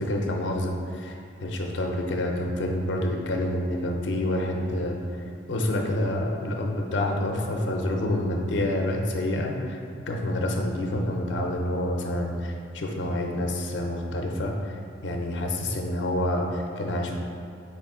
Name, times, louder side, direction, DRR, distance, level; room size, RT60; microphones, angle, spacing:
voice 1, 0.0-5.0 5.5-9.8 10.1-14.8 15.0-17.2, left 1 dB, 70° left, 2 dB, 0.5 m, -28 dB
4.3 x 3.0 x 3.6 m, 2.4 s
head